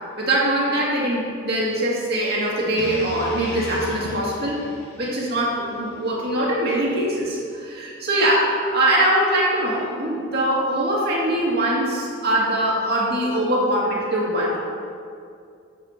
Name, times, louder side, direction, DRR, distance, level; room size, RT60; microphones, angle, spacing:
voice 1, 0.2-4.6 5.0-8.5 8.7-14.6, right 1 dB, 50° right, -5 dB, 2.4 m, -22 dB
sound 1, 2.8-6.9, left 1 dB, 55° left, 1.4 m, -35 dB
10.5 x 7.6 x 4.5 m, 2.4 s
head